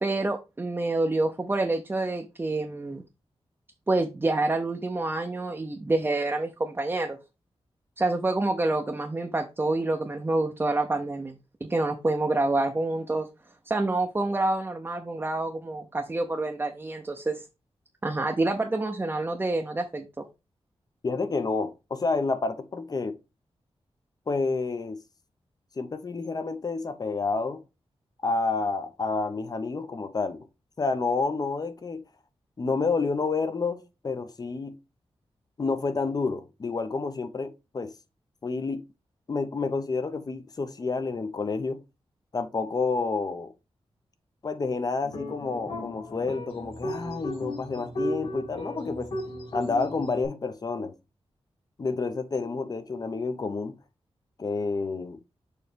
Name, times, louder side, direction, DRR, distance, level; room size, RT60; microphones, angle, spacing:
voice 1, 0.0-3.0 3.9-7.2 8.0-13.3 13.7-17.4 18.0-20.2, right 2 dB, 20° right, 0.7 m, -27 dB
voice 2, 21.0-23.2 24.3-25.0 25.8-27.6 28.2-30.4 30.8-32.0 32.6-34.7 35.6-37.9 38.4-38.8 39.3-41.8 42.3-43.5 44.4-49.1 49.5-50.9 51.8-53.8 54.4-55.2, left 4 dB, 40° left, 0.8 m, -29 dB
sound 1, 45.0-50.3, left 1 dB, 60° left, 2.7 m, -35 dB
6.8 x 3.2 x 5.1 m
wide cardioid pair, 155°, 10 cm